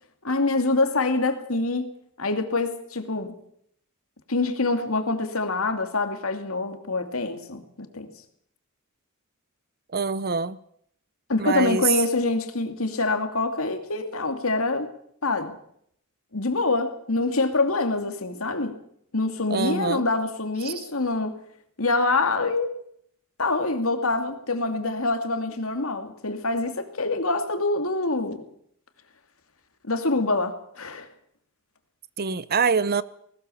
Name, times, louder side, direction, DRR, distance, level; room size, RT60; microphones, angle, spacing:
voice 1, 0.2-1.9 2.2-3.3 4.3-8.1 11.3-14.9 15.2-15.5 16.3-18.8 19.1-21.4 21.8-22.7 23.4-28.4 29.9-31.1, left 3 dB, 70° left, 2.7 m, -25 dB
voice 2, 9.9-10.6 11.4-11.9 19.5-20.0 20.7-20.9 32.2-33.0, right 5 dB, 45° right, 0.8 m, -24 dB
20.0 x 19.0 x 7.2 m
head